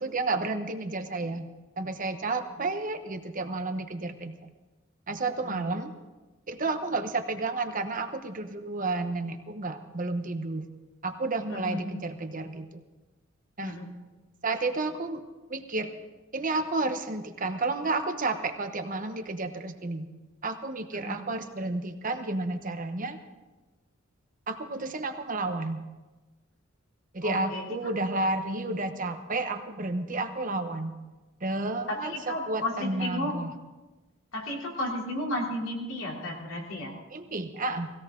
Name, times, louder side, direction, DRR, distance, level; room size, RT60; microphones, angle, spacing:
voice 1, 0.0-1.5 1.8-4.4 5.1-5.9 6.5-10.7 11.0-12.8 13.6-13.7 14.4-15.2 15.5-15.9 16.3-20.1 20.4-23.2 24.5-25.8 27.1-30.9 31.4-32.1 32.5-33.5 37.1-37.9, right 3 dB, 40° right, 7 dB, 1.0 m, -31 dB
voice 2, 11.5-11.9 13.6-13.9 20.9-21.3 27.2-27.9 31.9-33.4 34.3-36.9, left 1 dB, 75° left, -1 dB, 3.5 m, -33 dB
19.0 x 17.0 x 3.8 m, 1.2 s
head